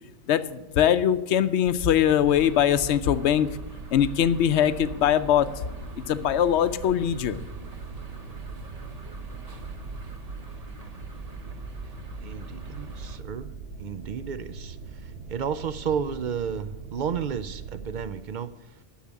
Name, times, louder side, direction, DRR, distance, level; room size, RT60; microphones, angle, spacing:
voice 1, 0.3-3.5 3.9-5.5 6.0-7.4, left 10 dB, 75° left, 13 dB, 0.9 m, -22 dB
sound 1, 1.6-18.0, right 5 dB, 75° right, 1.6 m, -42 dB
sound 2, 2.3-13.2, right 1 dB, 35° right, 1.0 m, -42 dB
voice 2, 12.2-13.5 13.8-18.8, right 7 dB, 60° right, 13 dB, 0.5 m, -32 dB
10.0 x 6.4 x 8.4 m, 1.0 s
omnidirectional pair, 1.2 m